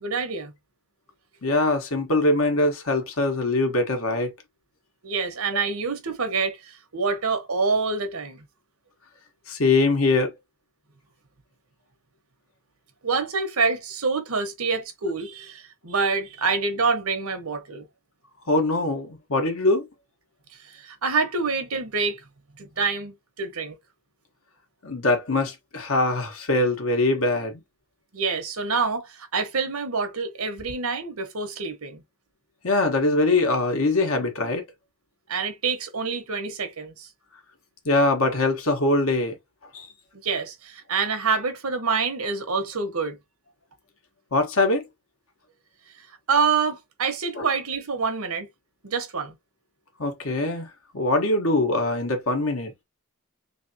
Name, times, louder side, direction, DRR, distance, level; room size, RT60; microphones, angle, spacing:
voice 1, 0.0-0.5 5.0-8.4 13.0-17.8 20.7-22.2 22.6-23.8 28.1-32.0 35.3-37.1 40.2-43.2 46.3-48.5 48.8-49.3, right 4 dB, 90° right, 1.2 m, -26 dB
voice 2, 1.4-4.3 9.5-10.3 18.5-19.9 24.8-27.6 32.6-34.6 37.8-39.4 39.7-39.9 44.3-44.8 47.4-47.5 50.0-50.7 50.9-52.7, left 2 dB, 70° left, 1.2 m, -22 dB
3.3 x 3.3 x 2.8 m
head